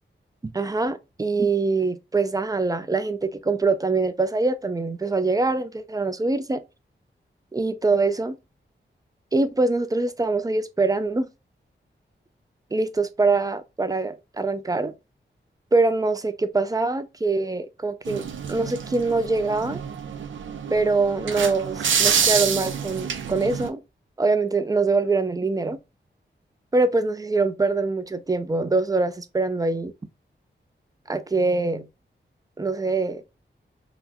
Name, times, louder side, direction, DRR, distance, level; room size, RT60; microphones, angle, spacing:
voice 1, 0.5-6.6 7.5-8.4 9.3-11.3 12.7-14.9 15.7-19.8 20.7-23.8 24.2-25.8 26.7-29.9 31.1-31.9 32.6-33.2, right 3 dB, 20° right, 0.4 m, -24 dB
sound 1, 18.1-23.7, right 7 dB, 80° right, 0.4 m, -27 dB
3.7 x 2.1 x 3.0 m
wide cardioid pair, 100°, 19 cm